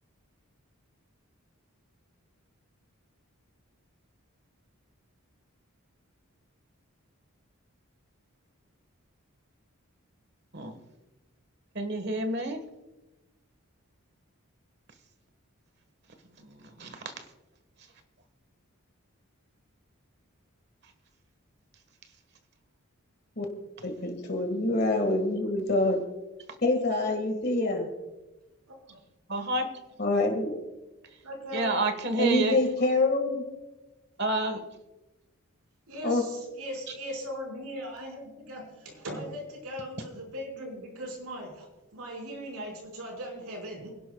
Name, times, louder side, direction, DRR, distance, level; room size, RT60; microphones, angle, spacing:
voice 1, 11.7-12.6 16.4-17.3 29.3-29.7 31.5-32.6 34.2-34.6, right 2 dB, 50° right, 8 dB, 1.4 m, -29 dB
voice 2, 23.8-26.0 26.6-27.9 30.0-30.6 32.2-33.4 36.0-36.2, left 2 dB, 45° left, 3 dB, 1.7 m, -26 dB
voice 3, 28.7-29.0 31.2-31.7 35.9-43.9, equal, 85° right, 1 dB, 5.1 m, -39 dB
28.5 x 11.5 x 2.3 m, 1.1 s
head